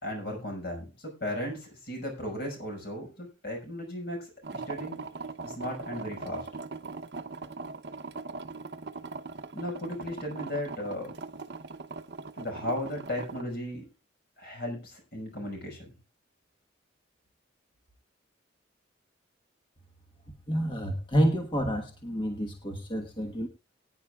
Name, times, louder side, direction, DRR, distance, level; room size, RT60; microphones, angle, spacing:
voice 1, 0.0-5.0 5.4-6.4 9.5-11.1 12.4-13.9 14.4-15.9, left 1 dB, 55° left, 2 dB, 5.7 m, -36 dB
sound 1, 4.4-13.4, right 3 dB, 60° right, 0.8 m, -40 dB
voice 2, 20.5-23.5, equal, 25° left, 3 dB, 1.3 m, -28 dB
22.0 x 9.9 x 2.4 m, 0.29 s
head